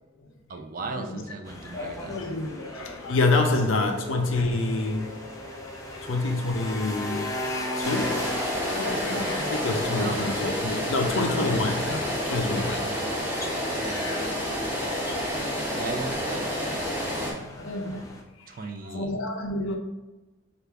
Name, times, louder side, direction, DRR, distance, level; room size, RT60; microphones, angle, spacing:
voice 1, 0.5-2.2 10.0-10.2 12.8-13.2 13.8-14.1 15.7-16.8 18.5-19.2, right 3 dB, 45° right, 5 dB, 0.4 m, -37 dB
sound 1, 1.4-18.2, left 2 dB, 15° left, 0.5 m, -38 dB
voice 2, 1.6-5.1 5.9-7.3 7.7-12.9 13.8-15.2 16.9-18.5 18.8-19.8, left 2 dB, 70° left, 4 dB, 0.5 m, -28 dB
sound 2, 3.8-13.8, equal, 70° right, 0.8 m, -44 dB
sound 3, 7.8-17.3, equal, 10° right, 1.0 m, -29 dB
3.4 x 2.5 x 4.5 m, 1.1 s
head